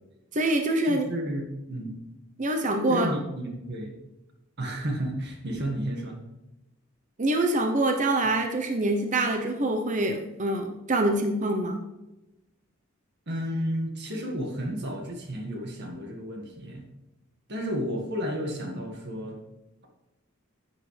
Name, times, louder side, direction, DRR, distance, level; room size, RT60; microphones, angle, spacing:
voice 1, 0.3-1.1 2.4-3.1 7.2-11.8, right 2 dB, 35° right, 4 dB, 0.8 m, -25 dB
voice 2, 0.8-2.0 2.9-3.9 4.6-6.2 13.3-16.9 17.5-19.4, equal, 55° right, 2 dB, 1.8 m, -32 dB
10.5 x 8.6 x 3.4 m, 1.0 s
head